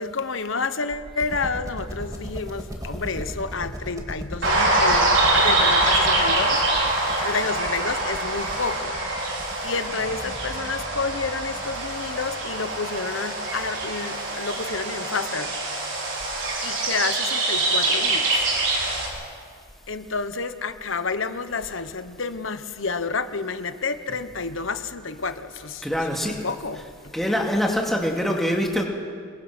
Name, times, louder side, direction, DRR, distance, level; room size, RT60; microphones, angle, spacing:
voice 1, 0.0-6.6 7.2-9.4 9.6-15.5 16.6-18.3 19.9-26.8, left 4 dB, 80° left, 10 dB, 1.2 m, -30 dB
sound 1, 1.2-13.0, equal, 20° right, 2.3 m, -37 dB
sound 2, 4.4-19.1, right 2 dB, 65° right, 5.4 m, -24 dB
voice 2, 25.8-26.5 27.1-28.8, equal, ahead, 0 dB, 2.6 m, -24 dB
27.5 x 22.0 x 6.2 m, 2.1 s
head